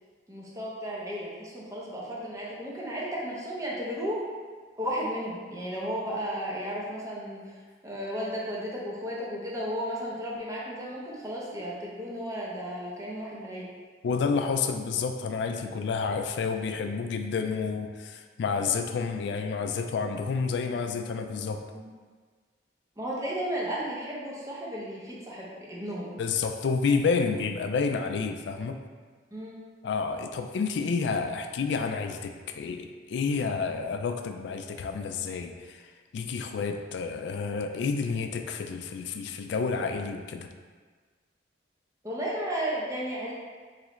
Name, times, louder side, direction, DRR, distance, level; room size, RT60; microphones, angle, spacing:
voice 1, 0.3-4.2 4.8-7.6 7.8-13.7 15.7-15.8 21.7-21.9 23.0-26.2 29.3-29.7 42.0-43.3, equal, 15° right, -5 dB, 0.6 m, -34 dB
voice 2, 14.0-21.6 26.2-28.8 29.8-35.8 36.1-40.5, left 5 dB, 70° left, 6 dB, 0.3 m, -29 dB
3.6 x 3.2 x 3.0 m, 1.5 s
head